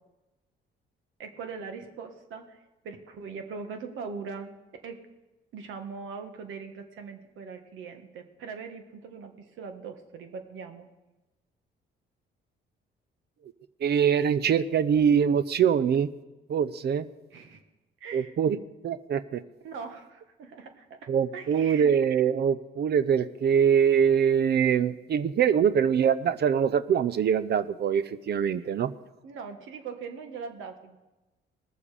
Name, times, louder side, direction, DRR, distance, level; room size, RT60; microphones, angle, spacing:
voice 1, 1.2-4.5 4.8-5.0 5.5-10.9 17.3-17.6 18.0-18.3 19.6-21.0 21.3-21.9 28.6-28.7 29.2-31.0, right 5 dB, 80° right, 6 dB, 1.6 m, -41 dB
voice 2, 13.8-16.1 16.5-17.1 18.1-18.6 18.8-19.4 21.1-28.9, right 8 dB, 55° right, 13 dB, 0.6 m, -23 dB
19.5 x 7.1 x 5.0 m, 1.1 s
cardioid pair, 90°, 20 cm